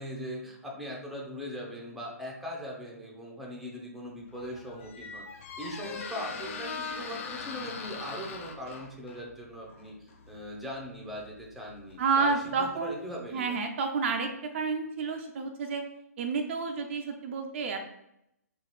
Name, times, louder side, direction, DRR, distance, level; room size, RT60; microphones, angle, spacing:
voice 1, 0.0-13.6, equal, ahead, -2 dB, 0.7 m, -40 dB
Squeak, 4.2-12.9, left 5 dB, 50° left, 0.5 m, -42 dB
voice 2, 12.0-13.0 13.3-14.3 14.5-15.8 16.2-17.8, right 4 dB, 45° right, 5 dB, 0.4 m, -30 dB
3.8 x 2.4 x 3.1 m, 0.79 s
hypercardioid pair, 135°, 9 cm